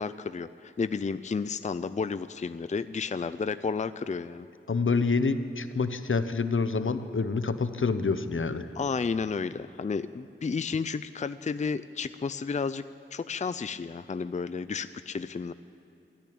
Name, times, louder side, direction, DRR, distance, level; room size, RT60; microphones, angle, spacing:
voice 1, 0.0-4.5 8.8-12.8 13.1-15.5, left 5 dB, 35° left, 13 dB, 0.4 m, -32 dB
voice 2, 4.7-8.7, left 4 dB, 75° left, 11 dB, 0.8 m, -27 dB
14.0 x 12.0 x 8.6 m, 2.9 s
wide cardioid pair, 40°, 21 cm